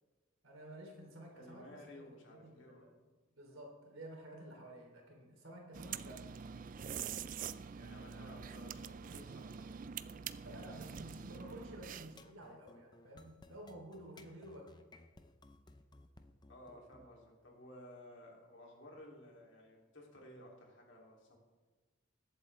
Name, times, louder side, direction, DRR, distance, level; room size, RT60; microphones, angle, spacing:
voice 1, 0.4-2.9 3.3-6.6 7.7-8.3 10.4-14.8, right 1 dB, 85° right, 0 dB, 3.2 m, -52 dB
voice 2, 1.4-2.9 7.9-9.7 16.5-21.4, left 1 dB, 65° left, -1 dB, 2.9 m, -56 dB
sound 1, 5.7-12.3, right 7 dB, 40° right, 0.3 m, -45 dB
sound 2, 12.0-17.1, left 2 dB, 20° left, 0.6 m, -59 dB
21.5 x 8.1 x 3.3 m, 1.3 s
head